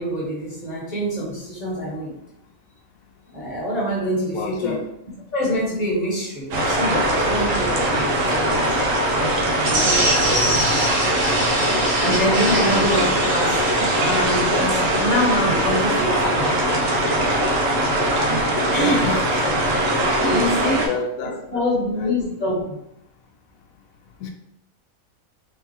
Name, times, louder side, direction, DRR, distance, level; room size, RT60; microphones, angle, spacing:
voice 1, 0.0-2.2 3.3-4.8 5.3-8.7 9.6-10.7 12.0-13.6 14.0-16.4 18.6-19.1 20.2-20.8 21.5-22.8, equal, 30° left, -5 dB, 1.2 m, -25 dB
voice 2, 4.3-4.9 12.6-12.8 18.8-19.6 20.6-22.4 24.2-24.3, left 5 dB, 85° left, 3 dB, 1.0 m, -29 dB
sound 1, 6.5-20.9, right 1 dB, 70° right, 1.1 m, -21 dB
sound 2, 9.6-16.0, right 1 dB, 90° right, 1.3 m, -26 dB
3.6 x 3.1 x 2.8 m, 0.80 s
omnidirectional pair, 1.4 m